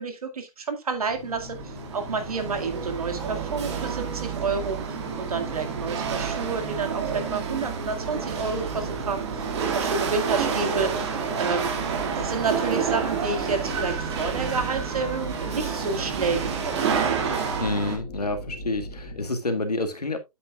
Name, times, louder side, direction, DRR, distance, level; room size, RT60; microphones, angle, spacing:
voice 1, 0.0-11.7 12.0-16.8, right 4 dB, 70° right, 2.1 m, -30 dB
sound 1, 1.1-19.3, left 2 dB, 35° left, 2.1 m, -41 dB
Chatter / Hiss / Rattle, 1.1-18.0, right 6 dB, 45° right, 2.0 m, -29 dB
sound 2, 12.4-17.5, left 4 dB, 15° left, 2.2 m, -45 dB
voice 2, 17.6-20.2, left 2 dB, 90° left, 1.9 m, -28 dB
9.2 x 8.3 x 2.4 m
hypercardioid pair, 140°, 19 cm